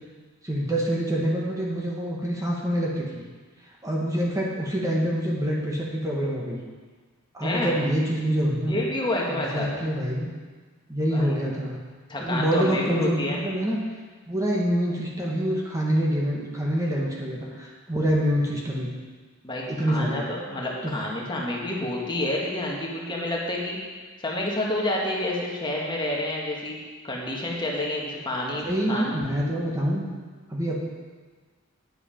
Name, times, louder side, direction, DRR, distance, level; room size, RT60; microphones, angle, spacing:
voice 1, 0.4-3.2 3.8-6.6 7.3-8.8 9.3-10.3 10.9-11.8 12.2-13.8 14.3-19.0 19.7-20.2 20.8-20.9 28.6-30.1 30.5-30.8, equal, 15° right, -3 dB, 1.2 m, -26 dB
voice 2, 7.4-7.8 8.5-9.7 11.1-11.4 12.1-13.4 19.4-23.8 24.2-26.8 27.0-29.2, left 1 dB, 20° left, -2 dB, 1.5 m, -29 dB
9.3 x 8.3 x 5.1 m, 1.4 s
head